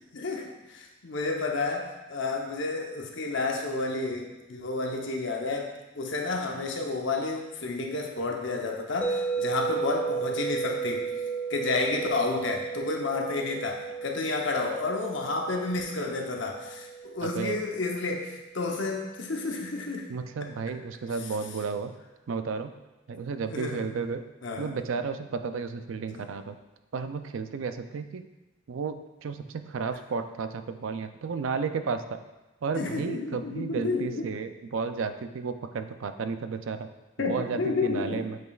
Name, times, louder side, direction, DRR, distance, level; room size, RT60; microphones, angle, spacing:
voice 1, 0.1-11.1 11.5-20.1 23.5-23.9 24.4-24.7 26.1-26.3 32.8-34.3 37.2-38.2, left 3 dB, 70° left, 1 dB, 0.8 m, -31 dB
sound 1, 9.0-19.1, right 5 dB, 10° left, 0.5 m, -34 dB
voice 2, 17.2-17.6 20.1-21.9 22.3-22.7 23.1-24.2 24.6-26.6 26.9-28.3 28.7-32.2 32.6-36.9 37.3-38.4, right 5 dB, 85° right, 9 dB, 0.4 m, -33 dB
7.9 x 5.1 x 2.4 m, 1.1 s
head